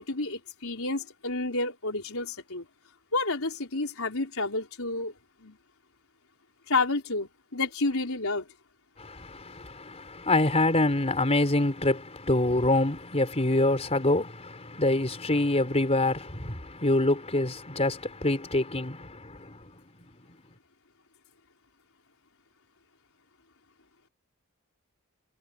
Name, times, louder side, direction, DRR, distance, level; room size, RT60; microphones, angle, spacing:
voice 1, 0.0-2.6 3.1-5.1 5.4-5.6 6.7-8.5, left 3 dB, 65° left, 5.0 m, -30 dB
voice 2, 9.0-19.6, left 2 dB, 30° left, 4.1 m, -26 dB
head